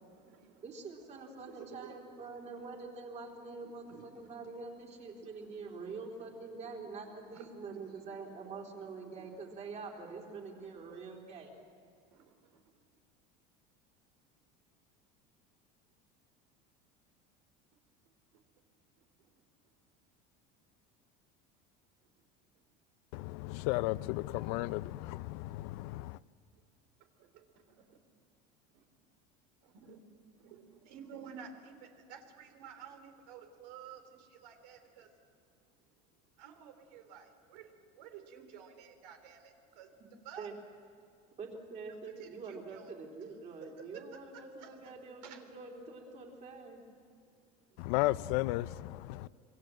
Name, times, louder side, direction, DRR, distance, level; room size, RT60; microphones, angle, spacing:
voice 1, 0.0-3.1 3.5-11.0 12.1-12.8 18.3-18.4 19.0-19.3 22.5-22.7 27.2-28.0 28.7-28.9 29.6-30.0 30.4-35.2 35.7-35.9 36.4-40.5 41.2-41.3 42.0-42.9 43.3-43.4 43.6-45.7 47.8-47.9 49.2-49.3, right 7 dB, 85° right, 3.5 m, -54 dB
voice 2, 0.6-11.5 40.4-40.5 41.4-46.8, right 4 dB, 35° right, 3.8 m, -45 dB
voice 3, 23.1-26.2 47.8-49.3, left 18 dB, 70° left, 0.6 m, -34 dB
27.0 x 23.5 x 7.7 m
cardioid pair, 155°, 20 cm